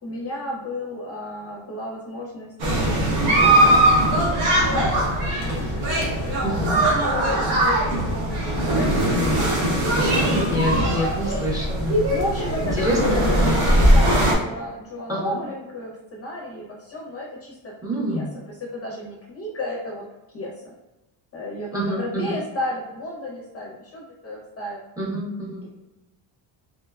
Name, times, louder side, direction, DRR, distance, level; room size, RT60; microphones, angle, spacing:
voice 1, 0.0-2.5 2.8-4.4 4.7-9.7 10.8-11.1 12.0-18.3 18.6-20.0 20.3-20.7 21.3-24.8, left 1 dB, 30° left, -3 dB, 0.6 m, -33 dB
sound 1, 2.6-14.3, right 1 dB, 80° right, 0.9 m, -20 dB
voice 2, 6.4-6.8 9.0-9.4 10.5-12.0 12.8-13.4 15.1-15.4 17.8-18.3 21.7-22.3 25.0-25.6, equal, 10° right, -3 dB, 0.7 m, -26 dB
2.9 x 2.2 x 2.2 m, 1.0 s
cardioid pair, 110°, 46 cm